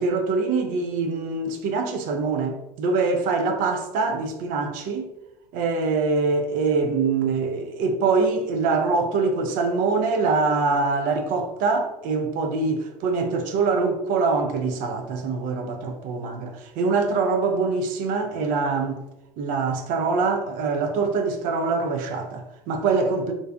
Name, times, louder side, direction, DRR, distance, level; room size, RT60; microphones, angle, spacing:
voice 1, 0.0-5.1 5.5-19.0 19.4-23.3, right 4 dB, 40° right, 0.4 m, -24 dB
2.5 x 2.2 x 2.2 m
figure-of-eight pair, 75°, 21 cm